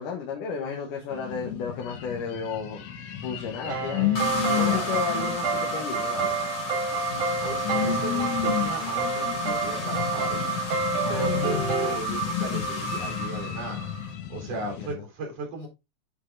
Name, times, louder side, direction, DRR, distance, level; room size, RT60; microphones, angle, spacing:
voice 1, 0.0-2.8 3.2-4.1 4.4-6.4 11.0-11.5 14.4-15.0, left 6 dB, 85° left, 2.9 m, -33 dB
sound 1, 1.1-14.9, left 10 dB, 60° left, 2.0 m, -32 dB
sound 2, 3.6-12.0, right 3 dB, 75° right, 3.3 m, -30 dB
sound 3, 4.1-14.1, right 2 dB, 25° left, 2.1 m, -31 dB
voice 2, 4.5-5.0 7.1-10.5 11.1-13.9 14.3-15.7, right 3 dB, 55° right, 4.3 m, -36 dB
10.0 x 4.3 x 3.8 m
omnidirectional pair, 3.6 m